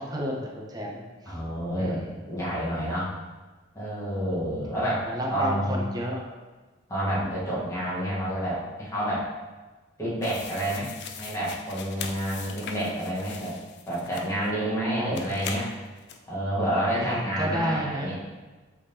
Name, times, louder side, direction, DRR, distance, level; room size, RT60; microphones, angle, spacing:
voice 1, 0.0-1.3 1.7-2.1 5.1-6.4 14.6-15.3 16.9-18.1, equal, 20° right, -1 dB, 0.6 m, -31 dB
voice 2, 1.2-2.0 2.2-3.1 3.7-5.0 5.3-5.8 6.9-9.2 10.0-10.9 11.1-13.5 13.8-15.7 16.3-18.2, equal, 15° left, -9 dB, 1.2 m, -29 dB
sound 1, 10.2-14.6 15.1-16.2, left 6 dB, 55° left, 0.3 m, -40 dB
3.4 x 3.3 x 2.8 m, 1.3 s
head